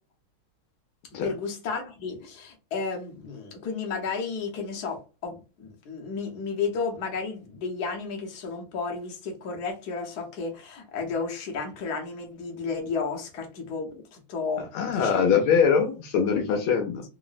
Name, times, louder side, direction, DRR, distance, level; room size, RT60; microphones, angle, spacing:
voice 1, 1.2-15.3, left 5 dB, 60° left, 1 dB, 1.2 m, -33 dB
voice 2, 14.7-17.0, left 6 dB, 80° left, 4 dB, 1.5 m, -22 dB
3.8 x 2.0 x 2.4 m, 0.31 s
omnidirectional pair, 2.3 m